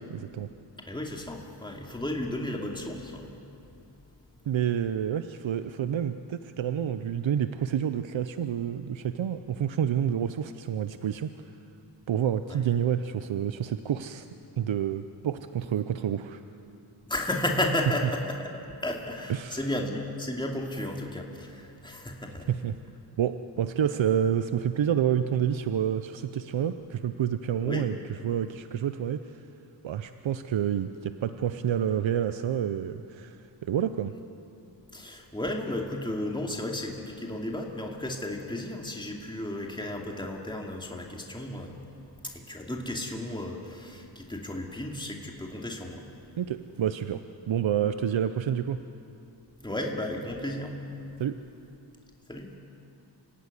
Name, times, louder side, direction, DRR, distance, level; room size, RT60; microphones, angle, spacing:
voice 1, 0.1-0.5 4.5-11.3 12.1-14.3 14.6-16.4 19.3-19.7 22.5-22.8 23.2-28.0 28.2-29.4 29.8-34.1 46.4-48.8 51.2-51.4, right 9 dB, 90° right, 10 dB, 0.7 m, -28 dB
voice 2, 0.8-3.3 12.5-12.7 17.1-18.4 18.8-22.5 27.6-28.0 34.9-41.7 42.2-46.0 49.6-51.1 52.3-52.5, left 1 dB, 10° left, 0 dB, 2.6 m, -33 dB
26.5 x 15.5 x 9.7 m, 2.8 s
cardioid pair, 60°, 45 cm